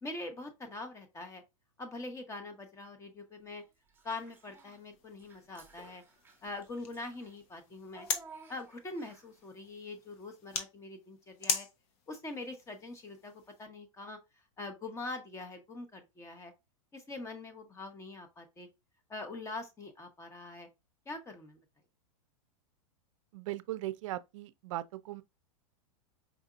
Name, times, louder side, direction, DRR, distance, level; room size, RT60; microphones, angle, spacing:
voice 1, 0.0-1.4 1.8-3.6 4.0-6.0 6.4-8.1 8.5-11.7 12.1-14.2 14.6-16.5 16.9-18.7 19.1-20.7 21.1-21.6, left 2 dB, 15° left, 0.9 m, -43 dB
Child speech kid speaking / Bathtub (filling or washing), 3.9-4.8 5.2-9.4, right 4 dB, 10° right, 1.0 m, -56 dB
sound 1, 4.3-13.6, left 6 dB, 50° left, 0.9 m, -42 dB
voice 2, 23.3-25.2, right 15 dB, 65° right, 0.4 m, -38 dB
4.8 x 2.7 x 2.4 m
hypercardioid pair, 125°, 18 cm